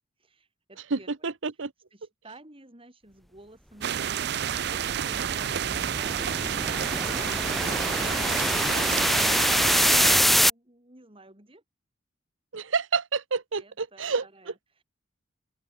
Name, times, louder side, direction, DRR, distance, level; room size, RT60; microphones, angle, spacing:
voice 1, 0.2-1.3 1.9-11.6 13.6-14.8, right 2 dB, 30° right, 4.8 m, -52 dB
voice 2, 0.9-1.7 12.5-14.2, right 4 dB, 85° right, 1.0 m, -29 dB
sound 1, 3.8-10.2, right 9 dB, 60° right, 0.5 m, -29 dB
sound 2, 4.5-10.5, equal, ahead, 0.4 m, -25 dB
open air
head